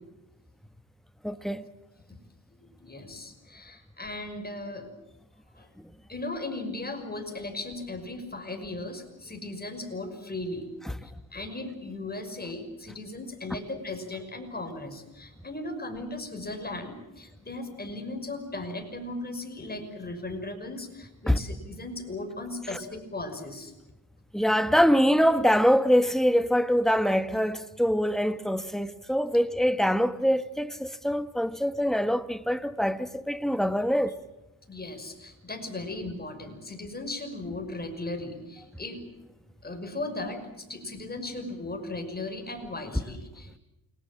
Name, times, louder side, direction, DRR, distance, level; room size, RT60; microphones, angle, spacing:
voice 1, 1.2-1.6 21.3-21.4 22.7-22.8 24.3-34.2, equal, ahead, 1.4 m, -24 dB
voice 2, 2.6-4.9 5.5-5.7 6.1-10.7 11.0-23.7 34.7-39.0 39.6-43.6, left 2 dB, 25° left, 6.0 m, -37 dB
29.5 x 20.5 x 7.6 m
cardioid pair, 85°, 40 cm